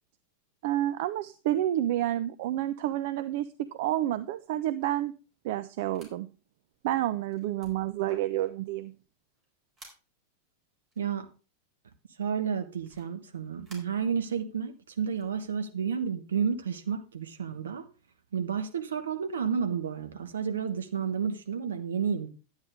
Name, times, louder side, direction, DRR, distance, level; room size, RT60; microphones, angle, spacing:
voice 1, 0.6-5.1 5.4-6.3 6.8-8.9, right 13 dB, 50° right, 13 dB, 0.4 m, -29 dB
sound 1, 4.5-4.6 4.8-5.0 5.8-6.1 6.7-6.8 7.2-8.8 9.3-9.5 9.8-10.1 10.9-11.1 12.8-13.8 15.1-15.3, right 1 dB, 25° right, 4.3 m, -53 dB
voice 2, 11.0-11.3 12.2-17.8 18.3-22.3, right 7 dB, 65° right, 9 dB, 1.1 m, -31 dB
11.0 x 8.9 x 3.6 m, 0.33 s
figure-of-eight pair, 90°, 0 cm